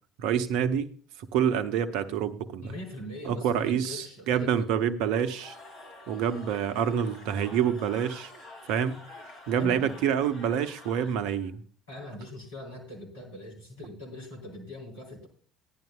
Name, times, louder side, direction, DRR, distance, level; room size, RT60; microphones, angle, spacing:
voice 1, 0.2-0.9 1.2-2.7 3.2-5.6 6.1-8.3 8.7-9.0 9.5-11.6, right 8 dB, 60° right, 11 dB, 0.7 m, -27 dB
voice 2, 2.6-4.5 9.6-9.9 11.9-15.3, left 1 dB, 75° left, -1 dB, 3.1 m, -41 dB
Cheering / Crowd, 5.2-11.5, left 2 dB, 55° left, 2.5 m, -48 dB
15.5 x 10.5 x 2.2 m, 0.43 s
figure-of-eight pair, 55°, 0 cm